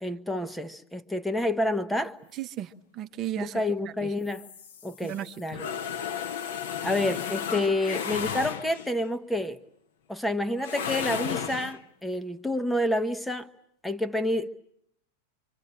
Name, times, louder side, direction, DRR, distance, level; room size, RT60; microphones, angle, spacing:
voice 1, 0.0-2.1 3.4-4.5 4.8-5.7 6.8-9.6 10.1-13.5 13.8-14.5, left 1 dB, 5° left, 1.3 m, -29 dB
voice 2, 2.3-4.1 5.0-5.6, right 11 dB, 35° right, 1.2 m, -36 dB
sound 1, 4.2-9.1 10.6-11.8, left 7 dB, 55° left, 1.4 m, -34 dB
26.0 x 25.5 x 8.8 m
figure-of-eight pair, 90°, 0 cm